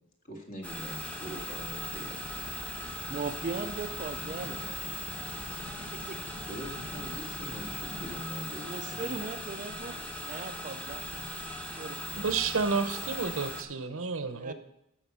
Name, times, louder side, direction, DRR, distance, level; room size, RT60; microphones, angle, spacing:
voice 1, 0.3-2.2 6.5-9.3, equal, 45° left, 1 dB, 2.0 m, -43 dB
sound 1, 0.6-13.6, equal, 5° left, 1.1 m, -39 dB
sound 2, 1.4-8.2, left 1 dB, 60° left, 1.4 m, -47 dB
voice 2, 3.1-4.8 5.9-6.2 8.5-11.3 11.8-12.0 14.3-14.5, right 4 dB, 40° right, 8 dB, 0.5 m, -39 dB
voice 3, 12.1-14.5, right 4 dB, 70° right, 9 dB, 0.9 m, -30 dB
13.5 x 5.5 x 5.6 m, 0.82 s
head